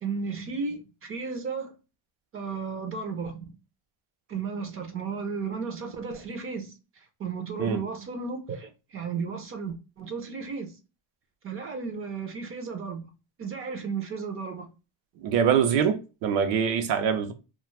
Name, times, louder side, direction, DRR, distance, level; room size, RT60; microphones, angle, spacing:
voice 1, 0.0-1.7 2.3-3.4 4.3-10.7 11.4-13.1 13.4-14.7, right 5 dB, 30° right, 0.5 m, -34 dB
voice 2, 15.2-17.3, right 7 dB, 80° right, 0.7 m, -24 dB
2.4 x 2.4 x 3.0 m
cardioid pair, 155°, 46 cm